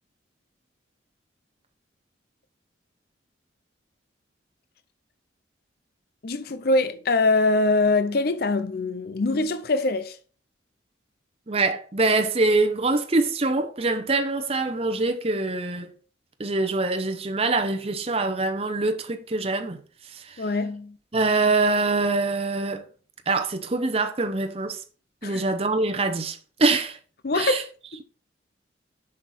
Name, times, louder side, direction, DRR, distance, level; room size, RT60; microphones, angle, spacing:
voice 1, 6.2-10.2 20.4-21.0 25.2-25.4 27.2-27.7, left 2 dB, 55° left, 0.6 m, -23 dB
voice 2, 11.5-15.9 16.4-19.8 20.1-20.5 21.1-22.8 23.3-24.8 25.2-27.0 27.3-27.6, right 3 dB, 30° right, 0.8 m, -24 dB
7.7 x 6.5 x 4.2 m
head